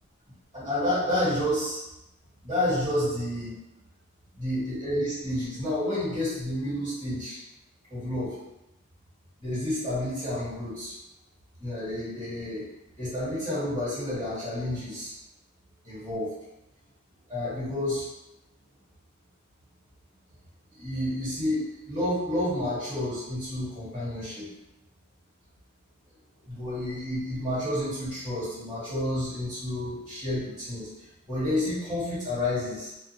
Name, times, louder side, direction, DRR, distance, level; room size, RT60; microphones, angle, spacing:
voice 1, 0.5-1.8 2.4-3.5 4.3-7.4 7.9-8.4 9.4-11.0 11.6-12.7 13.0-15.1 15.8-16.3 17.3-18.1 20.7-24.4 26.5-30.9 31.3-32.9, left 1 dB, 25° right, -14 dB, 1.5 m, -30 dB
2.5 x 2.1 x 2.8 m, 0.92 s
head